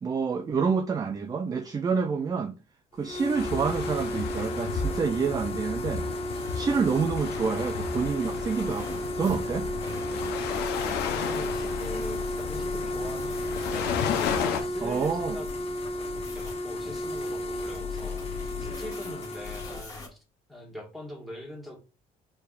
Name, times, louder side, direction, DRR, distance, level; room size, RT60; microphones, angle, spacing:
voice 1, 0.0-2.5 3.0-6.0 6.5-9.7 14.8-15.4, right 5 dB, 20° right, 0.3 m, -28 dB
sound 1, 3.0-19.8, left 1 dB, 35° left, 0.8 m, -33 dB
sound 2, 3.3-14.6, left 6 dB, 90° left, 0.7 m, -33 dB
sound 3, 6.3-20.1, left 5 dB, 20° left, 1.5 m, -42 dB
voice 2, 10.8-14.0 14.3-15.5 16.0-20.2 20.5-21.8, equal, ahead, 1.6 m, -42 dB
4.7 x 3.4 x 2.4 m
cardioid pair, 110°, 17 cm